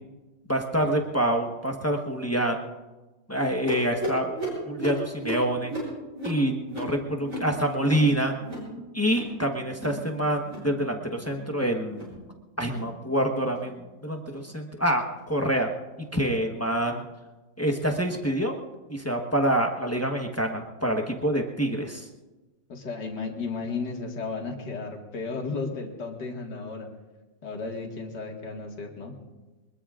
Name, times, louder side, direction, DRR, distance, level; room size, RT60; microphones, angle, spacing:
voice 1, 0.5-2.6 3.3-4.3 4.6-5.7 6.2-8.3 8.9-12.1 12.6-15.7 16.1-17.0 17.6-18.6 18.9-22.1, right 1 dB, 10° left, 2 dB, 0.7 m, -26 dB
sound 1, 3.7-8.7 9.0-9.4 9.6-10.0 10.3-10.7 11.1-11.4 11.8-12.2 12.6-12.9 13.4-13.7 14.3-14.5 15.1-15.3 16.0-16.1 16.8-16.9, right 1 dB, 40° right, 7.8 m, -35 dB
voice 2, 22.7-26.9 27.4-29.1, left 4 dB, 60° left, 1 dB, 2.5 m, -34 dB
23.5 x 21.5 x 2.5 m, 1.2 s
omnidirectional pair, 2.2 m